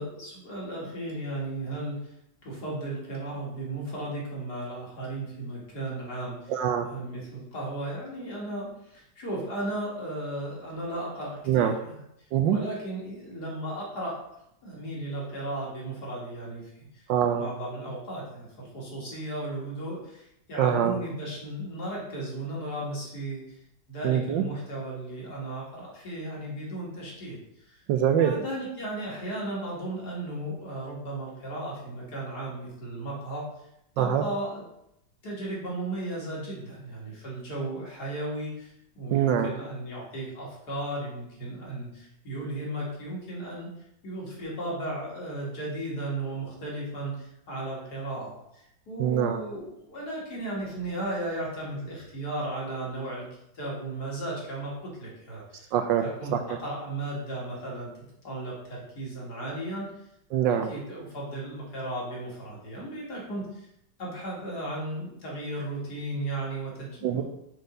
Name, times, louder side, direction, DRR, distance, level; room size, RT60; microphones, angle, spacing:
voice 1, 0.0-2.1 2.4-6.5 6.9-12.0 12.5-14.2 14.6-17.0 17.3-23.6 23.9-27.8 28.2-33.4 34.0-34.6 35.2-43.7 44.0-53.3 53.5-55.7 56.0-56.3 56.6-57.9 58.2-59.9 60.7-63.7 64.0-67.2, right 1 dB, 55° left, -4 dB, 2.7 m, -35 dB
voice 2, 6.5-6.9 11.5-11.7 12.3-12.6 17.1-17.5 20.6-20.9 24.0-24.4 27.9-28.3 34.0-34.2 39.1-39.5 49.0-49.4 55.7-56.0 56.3-56.6 60.3-60.7 67.0-67.2, right 9 dB, 75° right, 7 dB, 1.2 m, -24 dB
6.5 x 4.1 x 5.3 m, 0.81 s
omnidirectional pair, 2.2 m